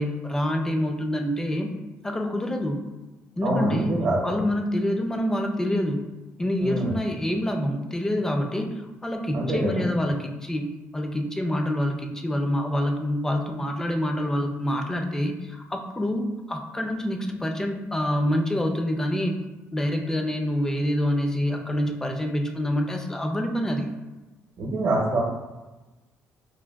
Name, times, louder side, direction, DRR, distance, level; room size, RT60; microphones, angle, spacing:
voice 1, 0.0-1.7 2.0-2.8 3.4-3.9 4.2-6.0 6.4-8.7 9.0-10.7 10.9-19.3 19.7-23.9, left 1 dB, 10° left, 3 dB, 0.3 m, -26 dB
voice 2, 3.4-4.4 6.6-7.0 9.3-9.8 24.6-25.2, right 1 dB, 60° right, -4 dB, 0.7 m, -25 dB
4.4 x 2.1 x 2.2 m, 1.1 s
cardioid pair, 130°, 5 cm